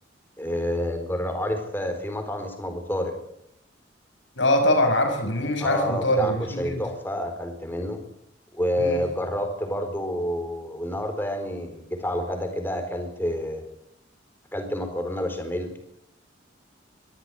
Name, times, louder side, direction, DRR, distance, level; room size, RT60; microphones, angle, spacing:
voice 1, 0.4-3.2 5.6-8.0 8.5-13.6 14.5-15.7, left 1 dB, 10° left, 5 dB, 4.2 m, -29 dB
voice 2, 4.4-6.8 8.8-9.0, left 1 dB, 75° left, 5 dB, 6.0 m, -23 dB
23.0 x 14.0 x 9.2 m, 0.77 s
head